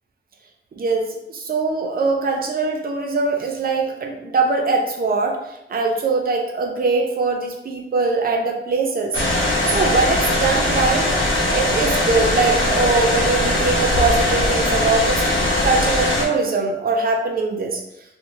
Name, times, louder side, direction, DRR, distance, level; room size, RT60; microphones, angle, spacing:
voice 1, 0.7-5.4 5.7-9.2 9.7-11.1 11.5-15.2 15.6-17.8, right 3 dB, 50° right, 1 dB, 0.5 m, -21 dB
sound 1, 9.1-16.2, left 1 dB, 85° left, 0.8 m, -20 dB
2.6 x 2.1 x 3.0 m, 0.85 s
wide cardioid pair, 160°, 20 cm